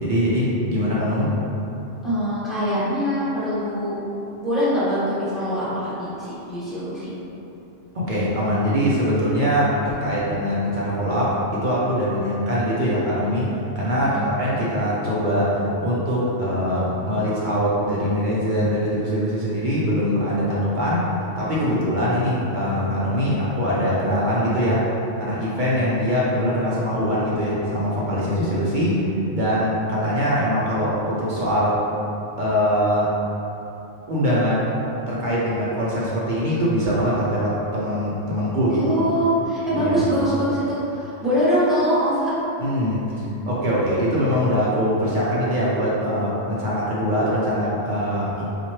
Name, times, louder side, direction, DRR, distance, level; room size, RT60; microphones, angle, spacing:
voice 1, 0.0-1.3 7.9-13.4 13.8-15.5 15.8-21.1 21.4-29.0 29.3-31.7 32.4-33.1 34.1-34.7 35.1-38.8 39.7-40.0 42.6-43.0 43.5-48.4, equal, 50° right, -7 dB, 0.6 m, -22 dB
voice 2, 2.0-4.0 4.4-7.1 14.0-14.3 38.7-42.3, equal, ahead, -12 dB, 1.2 m, -23 dB
4.2 x 2.5 x 3.0 m, 3.0 s
omnidirectional pair, 1.3 m